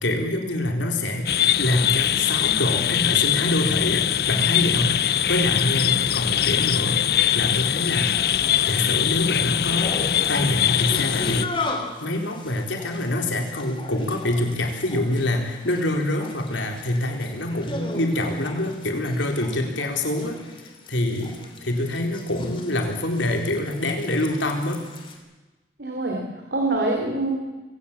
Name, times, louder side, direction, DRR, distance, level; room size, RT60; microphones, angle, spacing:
voice 1, 0.0-1.3 1.6-8.2 8.7-10.0 10.3-11.7 12.0-20.4 20.9-24.8, left 1 dB, 90° left, 3 dB, 4.0 m, -25 dB
sound 1, 1.3-11.5, left 10 dB, 55° left, 0.6 m, -22 dB
sound 2, 8.0-25.2, left 2 dB, 30° left, 3.0 m, -38 dB
voice 2, 25.8-27.6, right 2 dB, 65° right, 1 dB, 3.7 m, -25 dB
24.5 x 17.0 x 7.4 m, 1.2 s
head